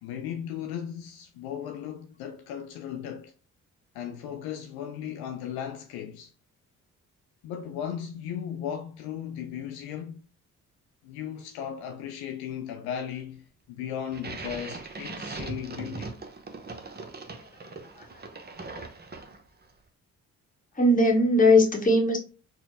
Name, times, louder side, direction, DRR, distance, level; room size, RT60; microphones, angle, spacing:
voice 1, 0.0-3.3 3.9-6.3 7.4-10.2 11.0-16.2, left 9 dB, 65° left, 0.5 m, -36 dB
sound 1, 14.1-19.6, right 3 dB, 25° right, 0.8 m, -40 dB
voice 2, 20.8-22.2, left 1 dB, 20° left, 1.1 m, -19 dB
4.4 x 2.2 x 2.6 m
hypercardioid pair, 45°, 40 cm